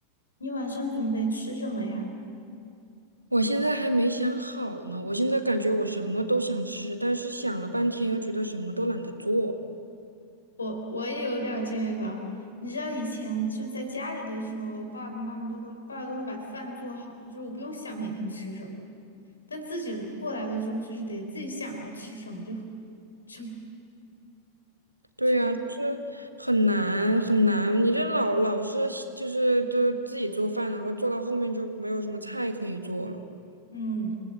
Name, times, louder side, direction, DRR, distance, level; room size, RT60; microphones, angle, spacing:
voice 1, 0.4-2.1 10.6-12.3 12.6-18.8 19.5-22.6 23.3-23.5 25.3-25.5 33.7-34.1, right 1 dB, 75° left, 5 dB, 4.0 m, -33 dB
voice 2, 3.3-9.6 25.2-33.2, right 1 dB, 85° right, 8 dB, 1.6 m, -26 dB
29.0 x 19.0 x 7.9 m, 2.6 s
figure-of-eight pair, 90°, 0 cm